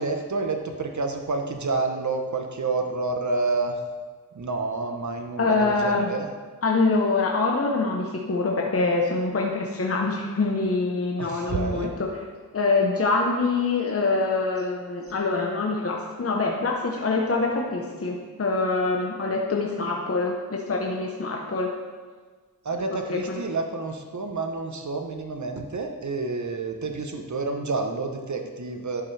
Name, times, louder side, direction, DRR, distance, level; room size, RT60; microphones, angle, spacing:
voice 1, 0.0-3.7 4.4-6.3 11.2-11.9 22.6-29.0, right 3 dB, 50° right, 4 dB, 0.9 m, -29 dB
voice 2, 5.4-6.1 6.6-12.2 12.5-21.7 22.9-23.5, left 3 dB, 35° left, 0 dB, 0.9 m, -25 dB
11.0 x 7.0 x 3.3 m, 1.5 s
wide cardioid pair, 90°, 38 cm